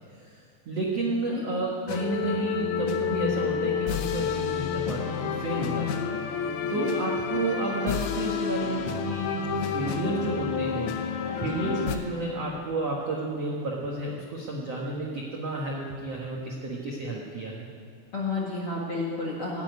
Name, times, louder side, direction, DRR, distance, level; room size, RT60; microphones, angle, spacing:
voice 1, 0.3-17.7, right 2 dB, 75° right, -2 dB, 1.4 m, -31 dB
voice 2, 1.1-1.4 6.7-6.9 11.2-11.7 18.1-19.6, left 3 dB, 50° left, -4 dB, 1.8 m, -32 dB
sound 1, 1.9-12.0, left 7 dB, 75° left, 2.4 m, -29 dB
15.0 x 10.0 x 9.4 m, 2.4 s
omnidirectional pair, 5.3 m